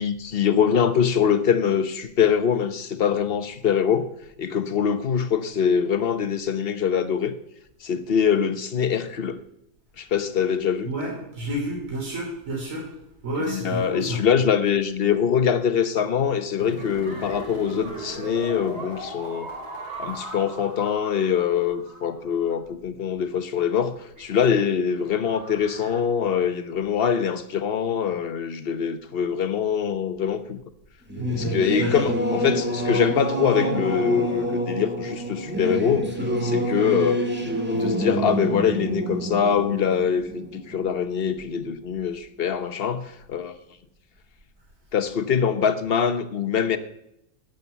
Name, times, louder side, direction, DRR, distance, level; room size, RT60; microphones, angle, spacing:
voice 1, 0.0-4.1 4.4-7.3 7.8-9.4 10.0-10.9 13.5-19.5 20.0-30.6 31.4-36.1 36.4-37.2 37.7-43.5 44.9-46.8, left 7 dB, 45° left, 0.9 m, -23 dB
voice 2, 10.9-12.9 13.2-14.3 31.2-32.1, equal, 55° right, 3.8 m, -30 dB
sound 1, 16.6-22.5, right 1 dB, 75° right, 4.7 m, -38 dB
sound 2, 16.8-21.7 24.2-26.0, right 3 dB, 35° right, 2.8 m, -44 dB
Singing / Musical instrument, 31.1-41.2, right 1 dB, 5° right, 1.7 m, -27 dB
11.5 x 9.0 x 6.9 m
omnidirectional pair, 1.6 m